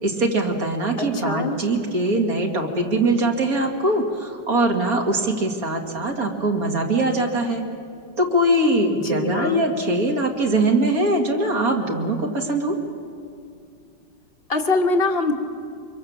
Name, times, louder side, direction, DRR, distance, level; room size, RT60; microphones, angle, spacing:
voice 1, 0.0-7.6 8.2-12.8, right 1 dB, 50° right, 1 dB, 2.8 m, -22 dB
voice 2, 1.0-1.6 8.9-9.7 14.5-15.3, left 3 dB, 35° left, 4 dB, 1.7 m, -23 dB
25.5 x 23.0 x 7.3 m, 2.5 s
omnidirectional pair, 2.0 m